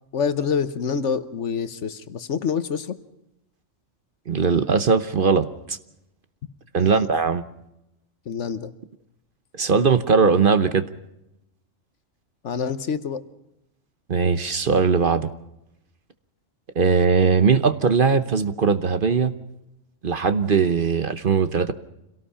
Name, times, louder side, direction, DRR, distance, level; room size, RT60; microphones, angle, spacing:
voice 1, 0.1-3.0 6.8-7.0 8.3-8.7 12.4-13.2, left 6 dB, 65° left, 12 dB, 1.3 m, -26 dB
voice 2, 4.3-5.8 6.7-7.4 9.5-10.9 14.1-15.3 16.8-19.3 20.0-21.7, right 5 dB, 45° right, 11 dB, 1.0 m, -20 dB
26.5 x 17.5 x 5.6 m, 0.86 s
omnidirectional pair, 1.3 m